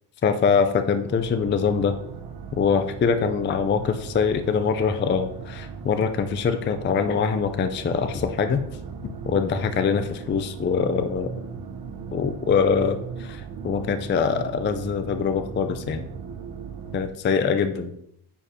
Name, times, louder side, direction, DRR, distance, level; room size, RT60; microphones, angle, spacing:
voice 1, 0.2-2.0 2.5-8.6 9.0-11.3 12.1-16.0 16.9-17.9, left 6 dB, 25° left, 9 dB, 0.4 m, -23 dB
sound 1, 1.0-17.1, right 6 dB, 45° right, 1.1 m, -37 dB
9.9 x 5.0 x 5.0 m, 0.73 s
cardioid pair, 180°, 49 cm